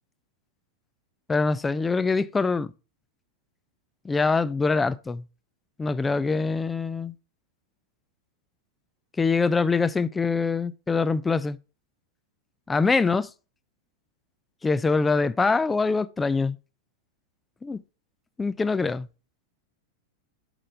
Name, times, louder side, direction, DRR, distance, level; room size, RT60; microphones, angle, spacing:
voice 1, 1.3-2.7 4.0-5.2 5.8-7.1 9.2-11.6 12.7-13.3 14.6-16.6 17.6-17.8 18.4-19.1, left 4 dB, 15° left, 0.4 m, -24 dB
7.3 x 6.6 x 3.3 m
figure-of-eight pair, 90°, 0 cm